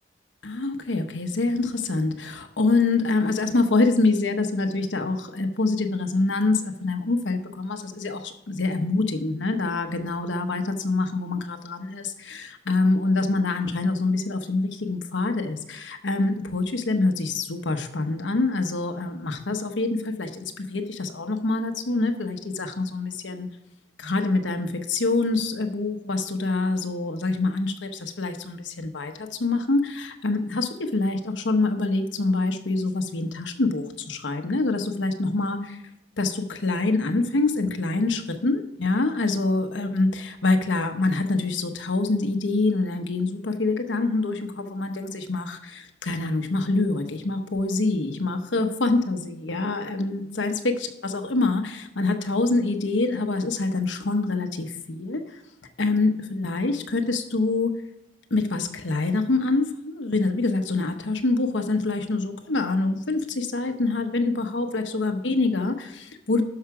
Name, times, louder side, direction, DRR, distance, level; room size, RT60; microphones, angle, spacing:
voice 1, 0.4-23.5 24.0-35.8 36.2-55.2 55.8-57.8 58.3-66.4, left 3 dB, 75° left, 6 dB, 1.0 m, -25 dB
12.0 x 5.7 x 4.9 m, 0.86 s
head